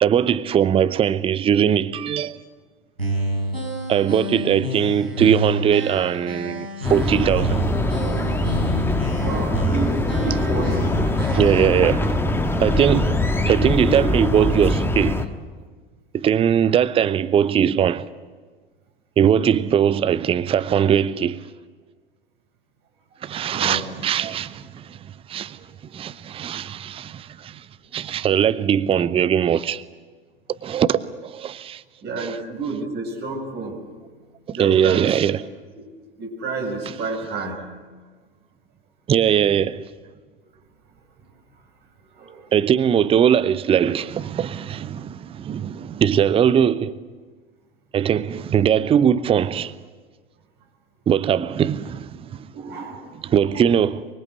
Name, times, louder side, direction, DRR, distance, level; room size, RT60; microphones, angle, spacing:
voice 1, 0.0-2.4 3.9-7.6 11.3-12.1 12.6-13.2 13.5-15.2 16.1-18.0 19.2-21.4 23.2-25.0 25.3-25.6 25.9-27.6 27.9-29.8 30.6-31.8 32.2-32.4 34.6-35.5 39.1-39.8 42.5-46.9 47.9-49.7 51.1-52.5 53.2-54.1, right 9 dB, 20° right, 0.7 m, -20 dB
sound 1, 3.0-11.7, right 1 dB, 90° right, 5.9 m, -29 dB
sound 2, 6.8-15.3, left 2 dB, 10° left, 1.5 m, -22 dB
voice 2, 9.2-10.9 23.3-23.8 26.5-26.6 32.0-33.8 34.5-35.0 36.2-37.6 42.2-42.5 52.5-53.6, right 3 dB, 35° right, 7.6 m, -30 dB
24.5 x 24.0 x 8.2 m
figure-of-eight pair, 85°, 30 cm